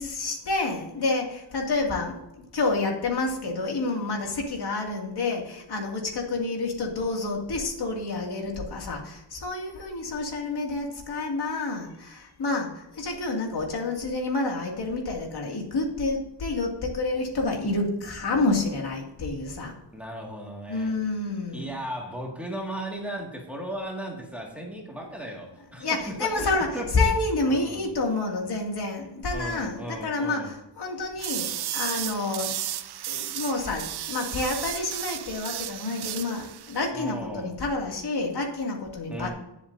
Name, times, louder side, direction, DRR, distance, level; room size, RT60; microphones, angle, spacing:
voice 1, 0.0-2.2 2.5-19.7 20.7-21.7 25.8-32.5 33.1-39.3, left 3 dB, 60° left, 1 dB, 2.4 m, -29 dB
voice 2, 19.9-20.9 21.5-26.9 27.5-27.9 29.3-30.5 36.9-37.5 39.1-39.3, right 1 dB, 5° right, -2 dB, 2.0 m, -36 dB
sound 1, 31.2-36.9, right 12 dB, 60° right, 0.5 m, -34 dB
19.0 x 7.5 x 2.7 m, 0.91 s
wide cardioid pair, 160°, 44 cm